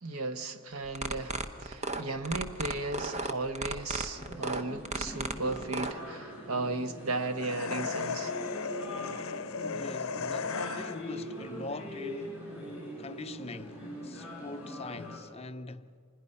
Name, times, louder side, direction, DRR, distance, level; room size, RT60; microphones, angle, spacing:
voice 1, 0.0-8.3, right 2 dB, 75° right, 1.3 m, -35 dB
sound 1, 0.8-5.9, right 3 dB, 30° right, 1.0 m, -34 dB
sound 2, 4.1-15.2, equal, 5° right, 5.8 m, -42 dB
sound 3, 7.4-11.2, left 5 dB, 65° left, 0.7 m, -36 dB
voice 2, 9.5-12.4 13.0-16.0, left 3 dB, 25° left, 0.6 m, -43 dB
26.0 x 20.5 x 5.6 m
head